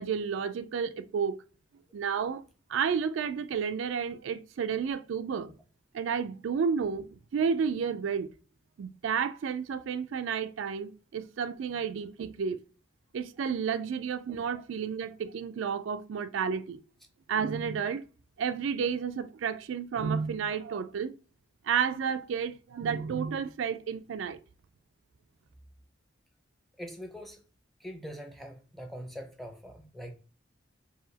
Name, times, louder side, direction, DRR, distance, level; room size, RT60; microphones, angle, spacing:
voice 1, 0.0-1.4 1.9-2.4 2.7-5.5 5.9-8.3 8.8-12.6 13.1-16.8 17.3-18.0 18.4-21.1 21.6-24.4, right 6 dB, 85° right, 0.4 m, -31 dB
voice 2, 26.8-27.4 27.8-30.1, equal, ahead, 0.7 m, -43 dB
4.8 x 2.8 x 2.7 m
head